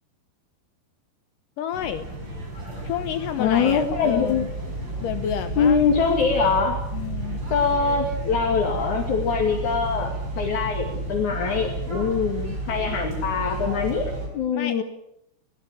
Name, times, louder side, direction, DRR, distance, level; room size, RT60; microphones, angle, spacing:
voice 1, 1.6-2.1 2.8-4.5 5.0-5.9 6.9-7.4 14.5-14.8, left 10 dB, 70° left, 11 dB, 2.1 m, -30 dB
sound 1, 1.7-14.3, right 2 dB, 25° right, 6.3 m, -31 dB
voice 2, 3.4-4.5 5.6-6.8 7.5-14.8, left 5 dB, 50° left, 1 dB, 3.7 m, -23 dB
22.0 x 17.5 x 8.6 m, 0.79 s
omnidirectional pair, 4.8 m